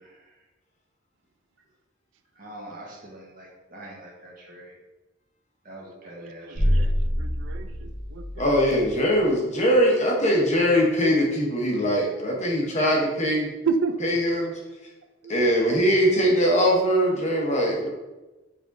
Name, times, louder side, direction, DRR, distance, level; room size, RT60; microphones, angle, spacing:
voice 1, 2.4-4.7 5.6-6.9, right 1 dB, 45° right, -3 dB, 1.2 m, -43 dB
voice 2, 6.0-6.9 7.2-8.6 12.3-12.7 13.7-14.0 15.2-15.3, right 5 dB, 70° right, 9 dB, 0.4 m, -31 dB
sound 1, 6.6-9.0, equal, 80° left, 1.3 m, -26 dB
voice 3, 8.4-13.5 14.0-14.5 15.3-17.9, equal, 35° left, -1 dB, 0.9 m, -21 dB
5.9 x 3.4 x 2.6 m, 1.1 s
head